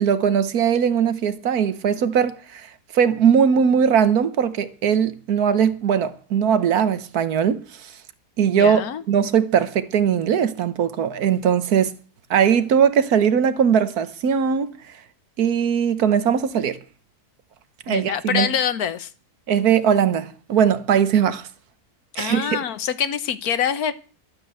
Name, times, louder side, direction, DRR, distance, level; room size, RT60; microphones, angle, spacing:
voice 1, 0.0-2.7 2.9-7.6 8.4-8.8 9.1-11.9 12.3-14.7 15.4-16.8 17.9-18.5 19.5-21.5 22.1-22.6, right 7 dB, 75° right, 1.5 m, -20 dB
voice 2, 8.5-9.0 17.9-19.1 22.2-23.9, left 8 dB, 70° left, 1.4 m, -25 dB
12.0 x 9.3 x 7.8 m
omnidirectional pair, 1.7 m